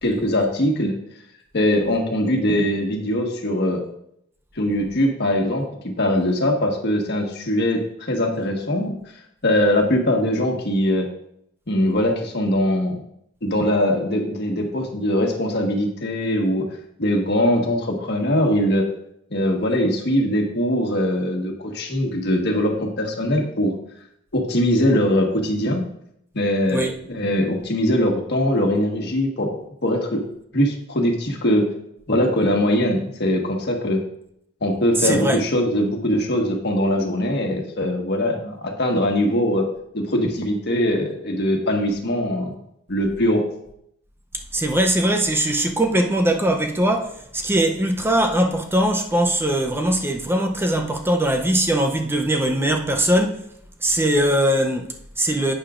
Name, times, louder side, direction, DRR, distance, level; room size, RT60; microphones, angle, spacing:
voice 1, 0.0-1.0 1.5-3.8 4.6-9.0 9.4-11.1 11.7-13.0 13.4-16.7 17.0-18.9 19.3-23.7 24.3-25.8 26.3-29.5 29.8-30.2 30.5-31.7 32.1-34.0 34.6-39.7 39.9-42.6 42.9-43.4, left 1 dB, 60° left, 1.5 m, -21 dB
voice 2, 35.0-35.4 44.5-53.5 53.8-55.5, right 1 dB, 10° right, 0.6 m, -21 dB
11.0 x 8.6 x 2.5 m
head